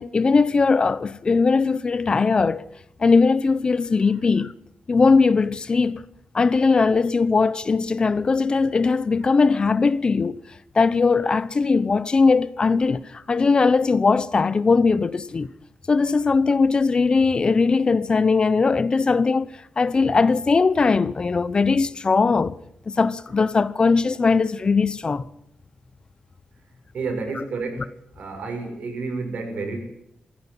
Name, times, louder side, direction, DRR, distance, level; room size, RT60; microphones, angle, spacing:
voice 1, 0.0-2.7 3.0-4.5 4.9-6.0 6.3-10.4 10.7-15.5 15.9-19.5 19.8-22.6 22.9-25.2 27.4-27.5, left 4 dB, 35° left, 0.8 m, -20 dB
voice 2, 26.9-27.9 28.2-29.8, right 4 dB, 75° right, 6.7 m, -30 dB
20.0 x 15.5 x 9.9 m
wide cardioid pair, 125°, 3 cm